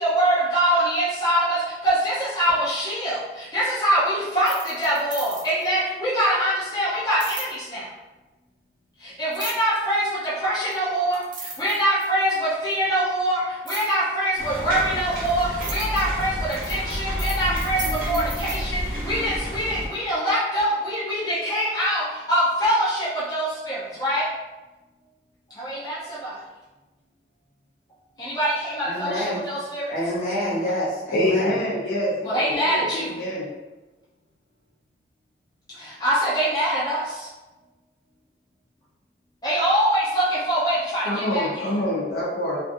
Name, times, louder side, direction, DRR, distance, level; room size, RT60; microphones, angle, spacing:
voice 1, 0.0-1.6 1.8-7.8 9.0-10.1 10.4-11.2 11.6-17.8 18.1-24.2 25.6-26.3 28.2-29.9 32.2-33.1 36.0-37.0 39.4-41.7, right 1 dB, 20° left, -10 dB, 0.5 m, -24 dB
sound 1, 4.3-5.7 7.2-7.5 9.3-9.8 10.7-10.8 11.1-12.2 13.7-13.9 14.8-18.6, right 3 dB, 25° right, 0.4 m, -36 dB
sound 2, 14.4-19.9, equal, 50° right, 0.8 m, -30 dB
voice 2, 28.8-29.4 29.9-31.6, left 1 dB, 45° left, -9 dB, 1.1 m, -27 dB
voice 3, 31.1-33.5 41.1-42.6, left 1 dB, 75° left, -6 dB, 0.6 m, -26 dB
2.5 x 2.4 x 2.5 m, 1.1 s
head